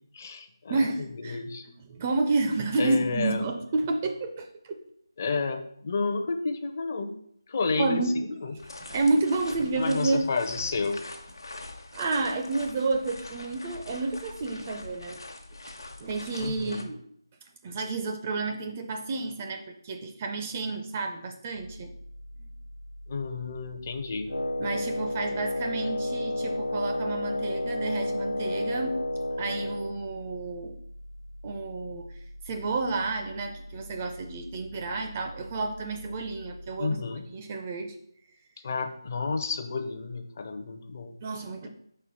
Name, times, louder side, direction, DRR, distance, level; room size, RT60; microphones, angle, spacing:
voice 1, 0.1-1.7 2.8-3.4 5.2-7.1 7.5-8.5 9.7-11.0 16.4-16.8 23.1-24.3 36.8-37.2 38.6-41.2, left 4 dB, 35° left, 6 dB, 0.6 m, -31 dB
voice 2, 0.7-1.4 1.8-4.8 7.8-8.2 8.8-10.2 11.9-15.2 16.0-17.0 17.6-21.9 22.4-22.5 24.6-29.0 29.4-30.8 31.4-32.1 32.4-37.0 37.3-38.0 41.2-41.7, right 3 dB, 20° right, 4 dB, 0.4 m, -30 dB
sound 1, 8.6-16.8, left 2 dB, 65° left, 1.0 m, -44 dB
sound 2, 21.5-37.3, equal, 80° right, 0.9 m, -45 dB
Wind instrument woodwind instrument, 24.3-30.0, left 1 dB, 85° left, 0.4 m, -31 dB
4.5 x 4.4 x 5.2 m, 0.67 s
figure-of-eight pair, 160°, 2 cm